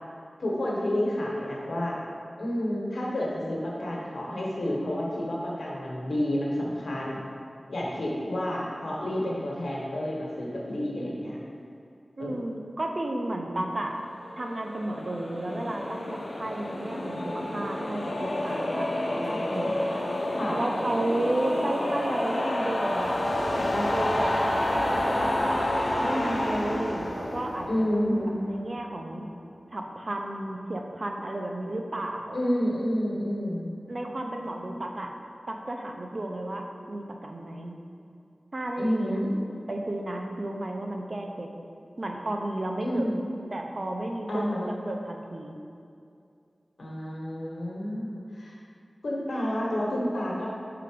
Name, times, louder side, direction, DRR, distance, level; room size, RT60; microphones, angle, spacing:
voice 1, 0.4-2.0 2.4-7.2 7.7-11.4 12.2-12.4 20.4-20.6 27.7-28.4 32.3-33.7 38.8-39.3 42.8-43.2 44.3-44.7 46.8-48.5 49.0-50.5, equal, 85° left, -4 dB, 1.1 m, -29 dB
voice 2, 12.2-14.0 14.4-19.9 20.5-24.4 25.2-25.7 26.0-28.0 28.4-29.3 29.7-32.4 33.9-35.1 35.5-37.8 38.5-39.2 39.7-41.5 42.0-43.1 43.5-44.4 44.9-45.6, right 1 dB, 55° right, 2 dB, 0.6 m, -33 dB
sound 1, 14.2-28.6, left 1 dB, 65° left, 0.7 m, -29 dB
5.6 x 3.8 x 5.0 m, 2.5 s
wide cardioid pair, 50°, 0 cm